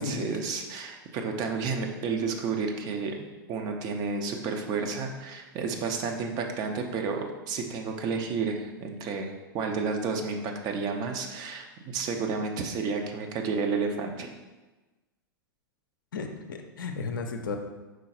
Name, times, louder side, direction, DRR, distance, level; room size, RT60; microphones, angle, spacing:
voice 1, 0.0-14.3, right 4 dB, 35° right, 3 dB, 0.5 m, -31 dB
voice 2, 16.1-17.6, left 4 dB, 65° left, 5 dB, 0.5 m, -34 dB
4.9 x 3.7 x 2.8 m, 1.2 s
figure-of-eight pair, 95°, 12 cm